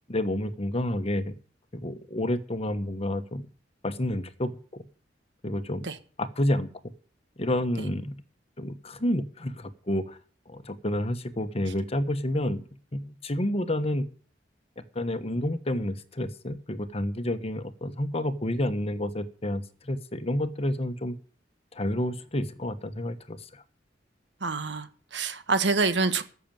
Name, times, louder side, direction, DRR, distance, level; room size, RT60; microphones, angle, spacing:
voice 1, 0.1-1.3 1.7-3.4 3.8-4.8 5.4-5.8 6.2-6.7 7.4-8.1 8.6-10.2 10.5-12.6 12.9-14.0 14.8-21.1 21.7-23.6, left 1 dB, 35° left, 1.1 m, -29 dB
voice 2, 24.4-26.2, right 4 dB, 80° right, 1.4 m, -26 dB
14.5 x 6.8 x 8.9 m
head